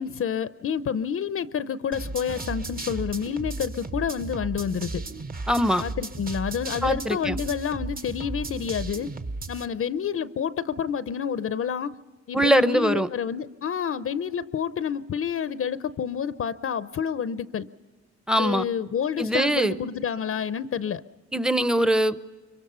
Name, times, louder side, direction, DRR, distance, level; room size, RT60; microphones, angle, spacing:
voice 1, 0.0-5.0 5.8-9.1 9.5-11.9 12.3-17.7 18.4-21.0, left 7 dB, 45° left, 14 dB, 0.7 m, -29 dB
sound 1, 1.9-9.7, right 3 dB, 30° right, 1.2 m, -35 dB
voice 2, 5.5-5.8 6.8-7.4 12.3-13.1 18.3-18.6 19.2-19.7 21.3-22.2, right 1 dB, ahead, 13 dB, 0.8 m, -22 dB
25.0 x 23.5 x 5.6 m, 1.4 s
cardioid pair, 90°, 30 cm